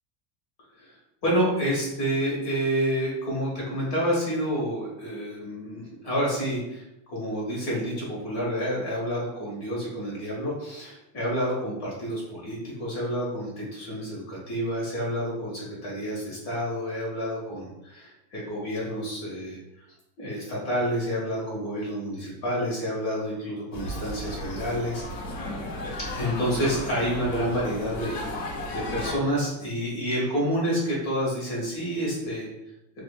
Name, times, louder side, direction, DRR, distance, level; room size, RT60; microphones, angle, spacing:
voice 1, 1.2-19.6 20.2-25.3 26.1-28.2 28.7-32.5, equal, 45° left, -5 dB, 1.4 m, -29 dB
sound 1, 23.7-29.2, left 1 dB, 75° left, 0.8 m, -34 dB
2.8 x 2.5 x 2.3 m, 0.88 s
cardioid pair, 170°, 50 cm